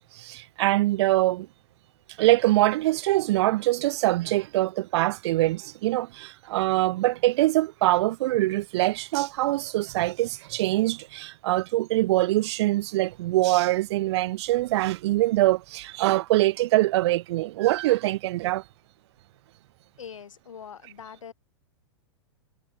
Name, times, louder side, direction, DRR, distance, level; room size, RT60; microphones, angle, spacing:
voice 1, 0.0-1.5 2.2-18.6, right 17 dB, 60° right, 0.7 m, -24 dB
voice 2, 20.0-21.3, left 7 dB, 85° left, 4.0 m, -42 dB
hypercardioid pair, 115°, 16 cm